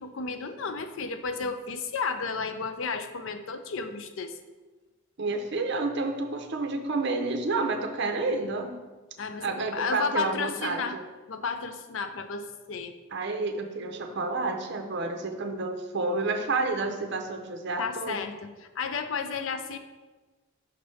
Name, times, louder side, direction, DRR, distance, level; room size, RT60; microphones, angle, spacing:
voice 1, 0.0-4.3 9.2-11.0 11.3-12.9 17.8-19.8, left 5 dB, 65° left, 9 dB, 0.5 m, -32 dB
voice 2, 5.2-8.7 9.4-11.0 13.1-18.2, right 3 dB, 55° right, 5 dB, 0.6 m, -30 dB
5.8 x 3.3 x 5.4 m, 1.2 s
head